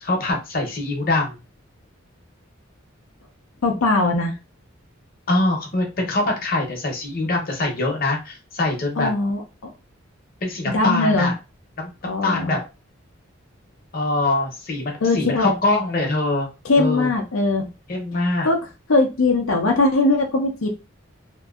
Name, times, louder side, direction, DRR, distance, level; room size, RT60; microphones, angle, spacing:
voice 1, 0.0-1.4 5.3-9.1 10.4-11.3 11.8-12.7 13.9-16.5 16.8-17.1 17.9-18.5, left 2 dB, 45° left, 0.8 m, -23 dB
voice 2, 3.6-4.3 9.0-9.7 10.7-11.3 12.1-12.6 15.0-15.5 16.6-17.7 18.4-18.6 18.9-20.7, left 2 dB, 85° left, 0.6 m, -20 dB
2.9 x 2.6 x 2.4 m
head